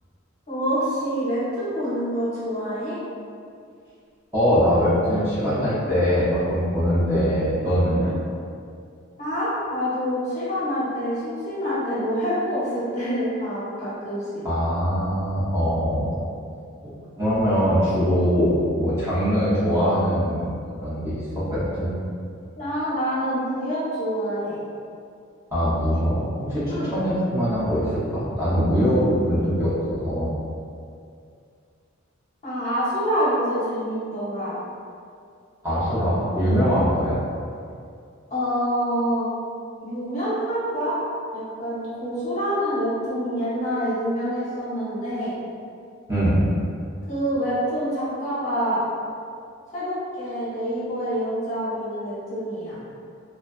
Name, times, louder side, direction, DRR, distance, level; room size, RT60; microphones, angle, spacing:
voice 1, 0.5-3.0 8.0-8.1 9.2-14.4 22.6-24.6 26.7-26.9 32.4-34.6 38.3-39.3 39.8-41.0 41.3-45.4 47.1-48.8 49.7-52.8, equal, 35° left, -10 dB, 0.7 m, -26 dB
voice 2, 4.3-8.1 14.4-16.2 16.8-21.9 25.5-27.9 28.1-30.3 35.6-37.2 46.1-46.4, equal, 15° right, -13 dB, 0.6 m, -22 dB
2.5 x 2.3 x 2.3 m, 2.4 s
head